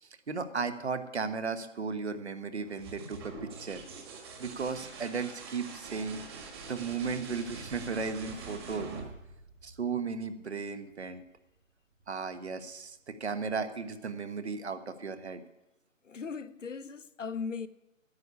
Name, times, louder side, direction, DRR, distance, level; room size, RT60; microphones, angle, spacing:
voice 1, 0.0-3.8 4.4-6.2 6.7-8.9 9.6-11.2 12.1-15.4, right 5 dB, 50° right, 1.4 m, -35 dB
sound 1, 2.6-10.2 12.0-12.6, right 4 dB, 20° right, 1.7 m, -45 dB
voice 2, 16.0-17.7, left 5 dB, 60° left, 0.8 m, -38 dB
10.5 x 8.4 x 9.7 m
figure-of-eight pair, 150°, 41 cm